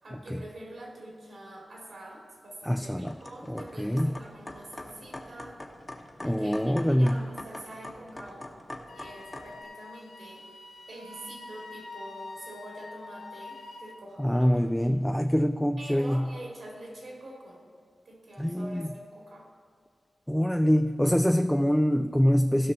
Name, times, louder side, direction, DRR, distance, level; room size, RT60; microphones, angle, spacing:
voice 1, 0.0-5.6 6.2-8.5 8.9-10.4 10.9-14.9 15.8-17.6 18.0-19.5, right 1 dB, 75° right, -2 dB, 2.6 m, -45 dB
voice 2, 2.7-3.1 3.5-4.1 6.2-7.3 14.2-16.3 18.4-18.8 20.3-22.7, equal, 5° left, 7 dB, 0.3 m, -25 dB
sound 1, 3.0-9.6, left 1 dB, 25° left, 1.0 m, -44 dB
Wind instrument woodwind instrument, 8.9-14.0, left 3 dB, 80° left, 1.0 m, -45 dB
15.5 x 5.8 x 4.2 m, 2.1 s
wide cardioid pair, 75°, 0 cm